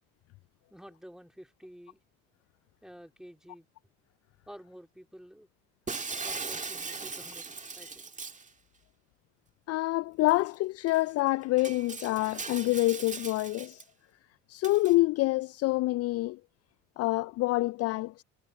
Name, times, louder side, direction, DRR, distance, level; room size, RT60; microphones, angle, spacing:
voice 1, 0.7-2.0 2.8-3.7 4.5-5.5 6.2-7.5 7.8-8.1, equal, ahead, 4.1 m, -50 dB
Shatter, 5.9-8.5 10.3-10.4 10.9-11.0 11.6-13.8 14.6-14.9, right 4 dB, 20° right, 2.0 m, -39 dB
voice 2, 9.7-13.8 14.5-16.4 17.0-18.2, left 19 dB, 45° left, 0.4 m, -27 dB
hypercardioid pair, 65°, 35 cm